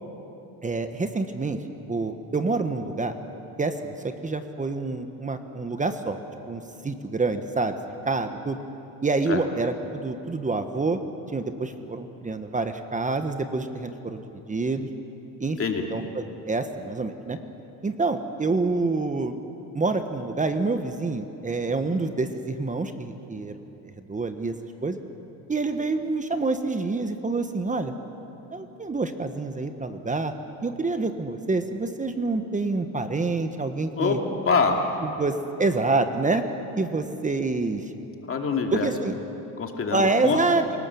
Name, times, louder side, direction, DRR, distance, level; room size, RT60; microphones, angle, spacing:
voice 1, 0.6-1.6 1.9-3.1 3.6-6.2 6.5-7.7 8.0-8.6 9.0-11.0 11.3-14.2 14.5-14.9 15.4-15.6 15.9-17.4 17.8-19.4 19.7-23.5 23.8-24.5 24.8-25.0 25.5-27.9 28.5-30.3 30.6-34.2 35.0-36.4 36.8-37.8 38.7-39.1 39.9-40.6, right 3 dB, 20° right, 8 dB, 1.2 m, -27 dB
voice 2, 34.5-34.8 38.2-38.9 39.6-40.4, left 5 dB, 35° left, 2 dB, 2.6 m, -24 dB
28.5 x 18.5 x 7.1 m, 3.0 s
cardioid pair, 115°, 40 cm